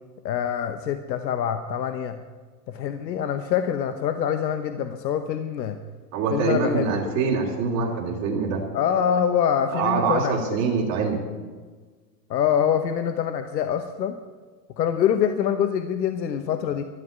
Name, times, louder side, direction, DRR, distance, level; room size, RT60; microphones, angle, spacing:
voice 1, 0.2-2.2 2.7-5.8 6.3-7.1 8.7-10.6 12.3-14.2 14.8-16.8, left 9 dB, 85° left, 9 dB, 1.1 m, -25 dB
voice 2, 6.1-8.6 9.7-11.2, right 5 dB, 30° right, -5 dB, 2.7 m, -24 dB
13.0 x 7.8 x 9.1 m, 1.4 s
hypercardioid pair, 140°, 49 cm